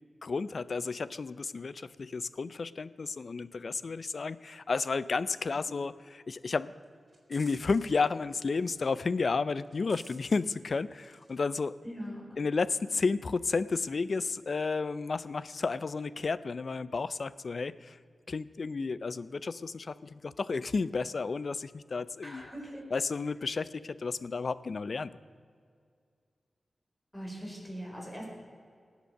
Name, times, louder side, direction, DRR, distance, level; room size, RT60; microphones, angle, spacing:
voice 1, 0.2-6.7 7.3-11.7 12.4-18.0 18.3-22.5 22.9-25.1, left 4 dB, 60° left, 17 dB, 0.5 m, -32 dB
sound 1, 6.8-8.1 8.5-8.9 9.2-11.3 11.6-12.1, right 2 dB, 40° right, 3.0 m, -56 dB
voice 2, 11.8-12.2 22.2-22.9 27.1-28.3, equal, 15° left, -2 dB, 4.4 m, -41 dB
18.5 x 8.1 x 6.4 m, 2.2 s
wide cardioid pair, 80°, 0 cm